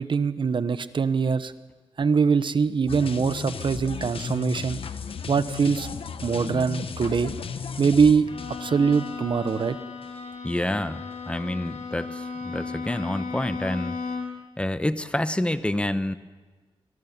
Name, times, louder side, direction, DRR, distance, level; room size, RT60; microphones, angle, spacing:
voice 1, 0.0-1.5 2.0-4.8 5.3-5.9 6.2-7.3 7.8-8.3 8.6-9.8, right 5 dB, 55° right, 13 dB, 0.9 m, -23 dB
sound 1, 2.9-9.7 10.0-10.2, left 6 dB, 65° left, 1.1 m, -35 dB
Bowed string instrument, 8.3-14.5, left 4 dB, 85° left, 3.1 m, -35 dB
voice 2, 10.4-14.0 14.6-16.2, left 1 dB, 10° left, 12 dB, 0.9 m, -28 dB
25.5 x 20.5 x 7.3 m, 1.3 s
wide cardioid pair, 105°, 10 cm